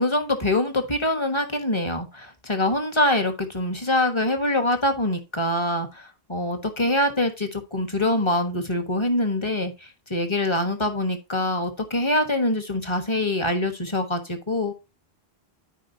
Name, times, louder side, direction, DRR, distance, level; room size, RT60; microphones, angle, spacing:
voice 1, 0.0-9.7 10.1-14.7, left 1 dB, 30° left, 1.4 m, -24 dB
13.0 x 5.0 x 2.8 m
omnidirectional pair, 1.0 m